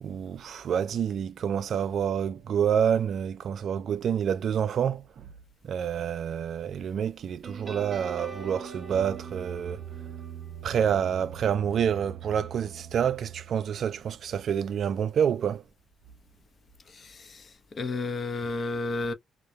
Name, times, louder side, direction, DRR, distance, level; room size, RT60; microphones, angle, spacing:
voice 1, 0.0-5.3 5.6-9.8 10.6-15.6, right 8 dB, 60° right, 0.3 m, -28 dB
sound 1, 7.4-14.6, right 7 dB, 35° right, 0.7 m, -42 dB
voice 2, 16.9-19.1, left 3 dB, 45° left, 0.6 m, -32 dB
2.1 x 2.1 x 2.7 m
cardioid pair, 90°, 0 cm